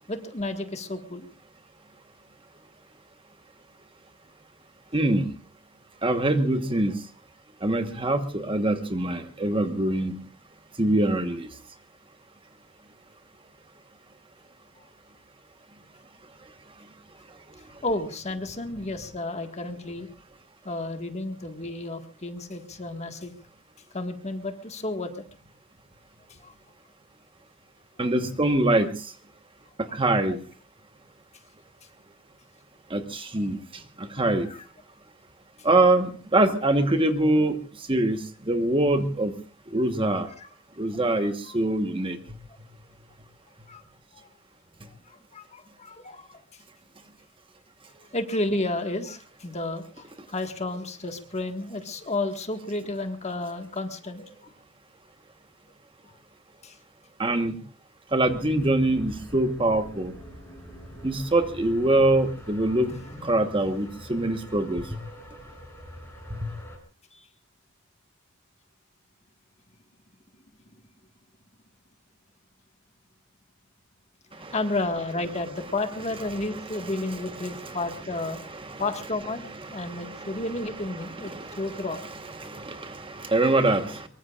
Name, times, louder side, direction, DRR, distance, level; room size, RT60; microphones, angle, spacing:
voice 1, 0.1-1.3 14.8-14.9 17.8-20.1 20.6-23.3 23.9-25.2 26.3-26.5 34.1-34.6 40.3-40.5 41.2-41.6 43.7-43.8 44.1-44.3 44.9-46.6 48.1-54.5 56.6-56.8 62.9-63.3 67.1-67.3 74.4-78.4 78.8-79.4 79.7-82.0, left 2 dB, 30° left, 6 dB, 1.7 m, -32 dB
voice 2, 4.9-5.3 6.0-7.0 7.6-10.1 10.8-11.5 28.0-29.1 29.8-30.4 32.9-34.5 35.6-37.6 37.9-39.3 39.7-40.3 40.8-42.2 57.2-57.6 58.1-60.1 61.0-62.9 63.2-65.0 66.4-66.5 74.4-74.5 76.5-77.8 78.5-78.8 79.7-80.4 81.0-81.9 82.4-84.1, right 2 dB, 25° right, 7 dB, 1.3 m, -24 dB
sound 1, 58.2-66.8, equal, 10° left, 6.7 m, -45 dB
24.0 x 23.0 x 2.5 m, 0.36 s
head